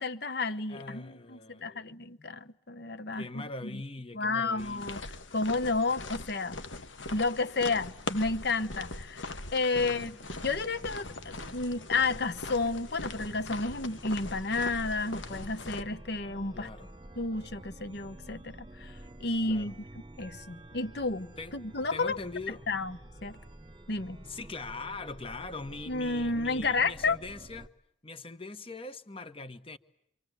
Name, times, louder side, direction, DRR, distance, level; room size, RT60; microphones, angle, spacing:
voice 1, 0.0-3.8 4.1-6.6 7.1-10.1 10.4-16.7 17.2-18.9 19.2-19.8 20.2-22.2 22.5-23.4 23.9-24.2 25.9-27.2, left 3 dB, 60° left, 1.1 m, -31 dB
voice 2, 0.7-1.9 2.2-2.3 3.1-4.9 9.7-10.2 16.5-16.9 19.5-19.7 21.4-21.6 21.9-22.6 24.3-27.7 28.0-29.8, left 3 dB, 30° left, 1.2 m, -42 dB
sound 1, 4.6-15.8, left 2 dB, 85° left, 1.5 m, -41 dB
Chime, 10.2-27.7, right 1 dB, 25° right, 1.2 m, -50 dB
26.5 x 26.5 x 7.9 m
head